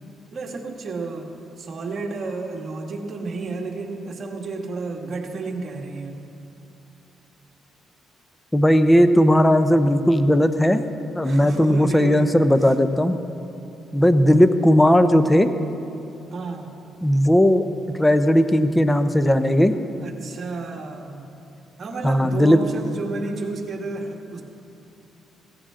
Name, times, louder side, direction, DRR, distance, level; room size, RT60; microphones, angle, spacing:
voice 1, 0.3-1.3 1.6-6.2 11.2-12.3 16.3-16.7 20.0-21.3 21.8-24.4, right 3 dB, 45° right, 1 dB, 1.9 m, -31 dB
voice 2, 8.5-10.8 11.1-13.2 13.9-15.5 17.0-17.7 17.9-19.7 22.0-22.6, equal, 10° left, 10 dB, 0.8 m, -17 dB
16.0 x 16.0 x 3.8 m, 2.8 s
cardioid pair, 90°, 0 cm